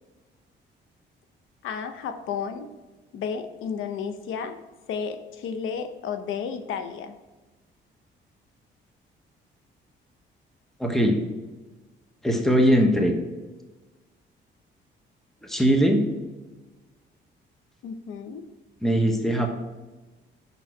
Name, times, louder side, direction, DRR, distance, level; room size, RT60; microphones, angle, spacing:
voice 1, 1.6-2.7 3.1-7.2 17.8-18.4, left 6 dB, 80° left, 9 dB, 0.7 m, -32 dB
voice 2, 10.8-11.2 12.2-13.1 15.4-16.1 18.8-19.5, equal, ahead, 3 dB, 1.0 m, -20 dB
5.9 x 5.4 x 4.7 m, 1.2 s
cardioid pair, 90°, 20 cm